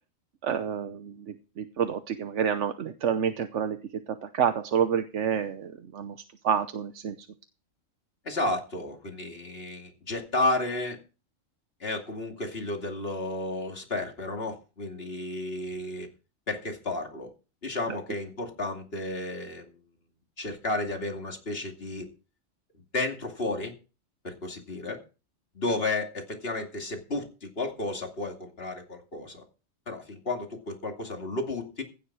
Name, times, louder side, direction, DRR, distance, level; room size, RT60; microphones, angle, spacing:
voice 1, 0.4-3.8 4.1-6.2 6.4-7.2, right 8 dB, 65° right, 9 dB, 1.1 m, -28 dB
voice 2, 8.2-11.0 11.8-16.1 16.5-17.3 17.6-19.7 20.4-22.1 22.7-23.7 24.2-25.0 25.5-29.4 29.9-31.8, left 2 dB, 45° left, 3 dB, 2.8 m, -32 dB
16.5 x 7.3 x 4.8 m, 0.33 s
omnidirectional pair, 1.3 m